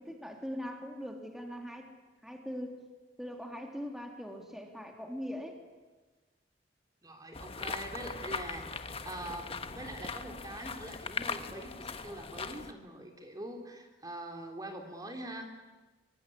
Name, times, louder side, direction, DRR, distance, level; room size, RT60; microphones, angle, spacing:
voice 1, 0.0-1.9 2.2-2.8 3.2-5.6, equal, ahead, 2 dB, 3.0 m, -41 dB
voice 2, 7.0-15.5, right 1 dB, 20° right, 4 dB, 3.2 m, -44 dB
sound 1, 7.3-12.7, left 4 dB, 35° left, 1.3 m, -40 dB
25.0 x 24.0 x 9.9 m, 1.2 s
head